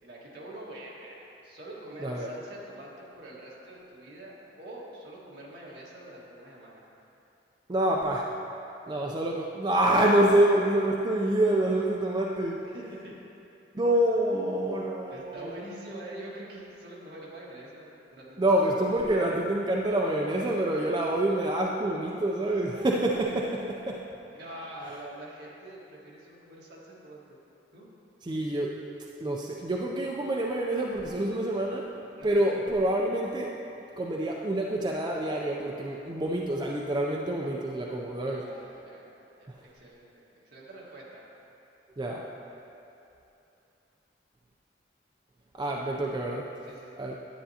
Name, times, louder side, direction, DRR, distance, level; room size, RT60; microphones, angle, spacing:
voice 1, 0.0-6.8 12.6-13.1 15.1-19.3 24.3-27.4 27.7-27.9 32.2-32.6 38.3-39.1 39.4-41.2 46.6-47.1, right 1 dB, 65° right, -5 dB, 1.6 m, -45 dB
voice 2, 2.0-2.3 7.7-8.3 8.9-12.6 13.7-15.6 18.4-24.0 28.2-28.8 29.2-31.9 32.2-33.5 34.0-38.4 39.5-39.6 42.0-42.2 45.5-46.5 47.0-47.1, right 1 dB, 25° right, -1 dB, 0.4 m, -27 dB
10.0 x 8.8 x 2.8 m, 2.8 s
head